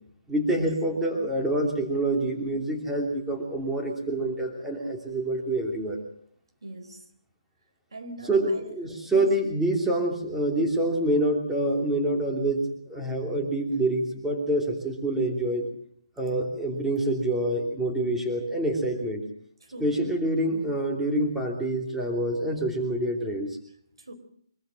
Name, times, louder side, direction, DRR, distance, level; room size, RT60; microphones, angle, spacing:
voice 1, 0.3-6.0 8.3-15.7 16.2-19.2 19.8-23.6, right 1 dB, 5° right, 1 dB, 3.1 m, -26 dB
voice 2, 6.6-7.1 7.9-9.3 19.6-20.0 24.0-24.1, right 1 dB, 85° right, 8 dB, 4.3 m, -41 dB
24.5 x 14.5 x 7.7 m, 0.65 s
hypercardioid pair, 155°, 3 cm